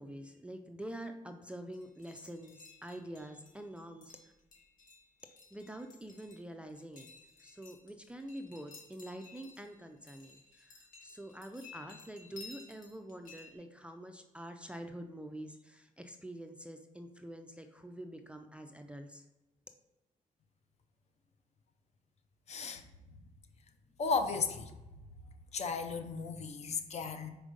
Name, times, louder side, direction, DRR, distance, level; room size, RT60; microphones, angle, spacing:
voice 1, 0.0-4.3 5.5-7.1 7.4-19.2, right 1 dB, 10° right, 5 dB, 0.3 m, -46 dB
sound 1, 1.7-13.5, left 4 dB, 70° left, 1.5 m, -56 dB
voice 2, 22.5-22.8 24.0-24.8 25.5-27.3, left 4 dB, 50° left, 8 dB, 0.6 m, -35 dB
5.0 x 4.4 x 5.1 m, 1.0 s
wide cardioid pair, 155°, 15 cm